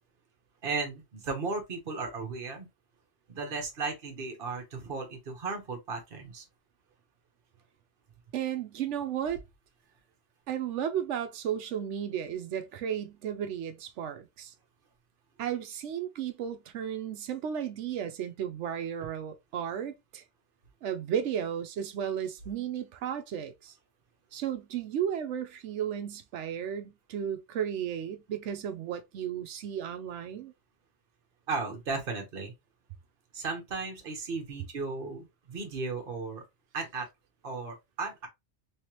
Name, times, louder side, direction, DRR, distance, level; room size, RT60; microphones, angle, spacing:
voice 1, 0.6-2.7 3.3-6.4 31.5-32.5 33.3-36.4 36.7-37.1 37.4-38.3, right 4 dB, 55° right, 1.2 m, -35 dB
voice 2, 8.3-9.4 10.5-14.5 15.4-20.2 20.8-23.7 24.3-30.5, right 9 dB, 85° right, 0.9 m, -34 dB
3.2 x 3.1 x 2.9 m
omnidirectional pair, 1.2 m